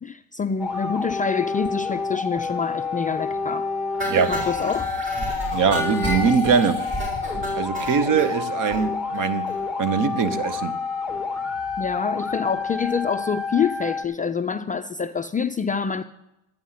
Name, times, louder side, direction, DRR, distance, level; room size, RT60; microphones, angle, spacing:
voice 1, 0.0-3.7 4.3-4.8 11.8-16.0, left 6 dB, 20° left, 0.4 m, -26 dB
sound 1, 0.6-14.0, left 4 dB, 5° right, 1.7 m, -29 dB
sound 2, 4.0-8.3 8.7-8.8 9.1-9.2 9.5-9.6 9.9-10.0, equal, 25° right, 5.0 m, -31 dB
voice 2, 5.5-6.9 7.5-9.5 9.8-10.7, right 6 dB, 45° right, 1.0 m, -22 dB
12.0 x 9.3 x 5.7 m
cardioid pair, 105°, 42 cm